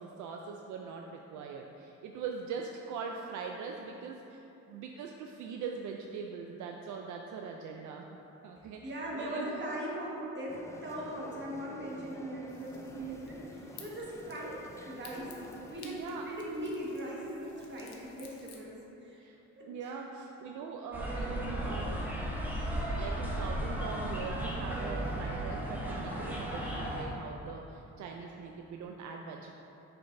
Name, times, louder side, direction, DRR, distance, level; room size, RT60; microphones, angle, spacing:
voice 1, 0.0-8.1 8.4-9.6 12.9-13.2 15.8-16.3 19.2-22.0 22.3-22.4 23.0-29.5, right 5 dB, 75° right, 2 dB, 0.5 m, -42 dB
voice 2, 8.8-13.4 13.7-19.2 19.6-19.9, equal, 40° right, -4 dB, 1.5 m, -40 dB
sound 1, 10.5-15.8, left 1 dB, 10° left, 0.4 m, -50 dB
sound 2, 12.5-18.6, left 5 dB, 70° left, 0.9 m, -55 dB
sound 3, 20.9-27.0, right 1 dB, 5° right, 1.0 m, -35 dB
6.7 x 6.0 x 2.6 m, 3.0 s
cardioid pair, 90°, 30 cm